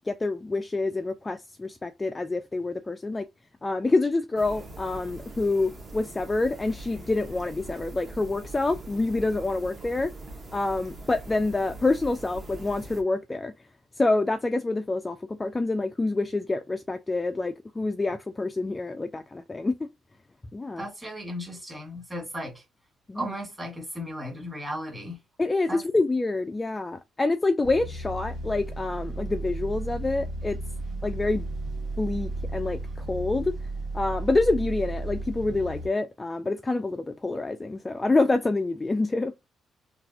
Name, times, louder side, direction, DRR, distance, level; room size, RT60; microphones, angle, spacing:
voice 1, 0.1-3.3 3.6-10.1 10.5-13.5 14.0-19.8 20.5-20.9 23.1-23.3 25.4-30.6 31.0-31.5 32.0-32.8 33.1-33.5 33.9-39.3, left 2 dB, 20° left, 0.3 m, -27 dB
sound 1, 4.4-13.0, right 2 dB, 35° right, 1.1 m, -42 dB
voice 2, 20.8-22.5 23.2-25.2 25.7-25.8, equal, 15° right, 1.8 m, -35 dB
sound 2, 27.6-35.9, right 2 dB, 75° right, 1.4 m, -34 dB
4.0 x 2.4 x 2.8 m
cardioid pair, 90°, 0 cm